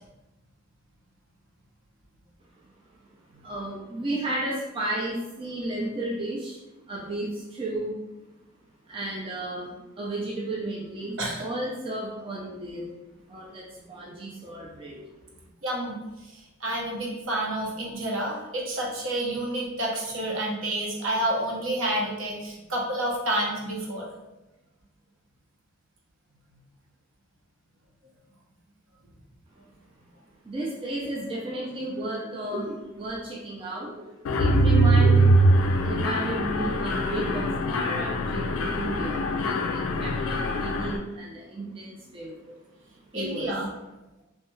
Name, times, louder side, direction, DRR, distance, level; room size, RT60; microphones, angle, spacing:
voice 1, 3.4-6.6 6.9-8.0 8.9-12.9 13.3-15.1 30.4-35.4 35.8-42.5 43.1-43.5, right 1 dB, 25° right, -4 dB, 0.4 m, -33 dB
voice 2, 15.6-16.0 16.2-24.1 43.1-43.7, right 1 dB, 65° right, -3 dB, 0.8 m, -29 dB
Mechanisms, 34.2-41.0, right 1 dB, 65° left, 0.3 m, -23 dB
3.1 x 2.2 x 3.0 m, 0.99 s
head